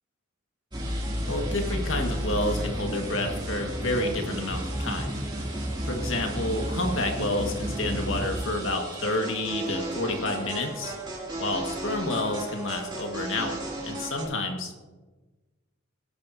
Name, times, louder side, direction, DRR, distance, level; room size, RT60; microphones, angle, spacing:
sound 1, 0.7-14.2, right 1 dB, 25° right, 2.7 m, -33 dB
voice 1, 1.3-5.1 5.9-10.9 11.4-14.8, left 2 dB, 75° left, 3 dB, 1.7 m, -29 dB
18.0 x 10.5 x 2.8 m, 1.2 s
head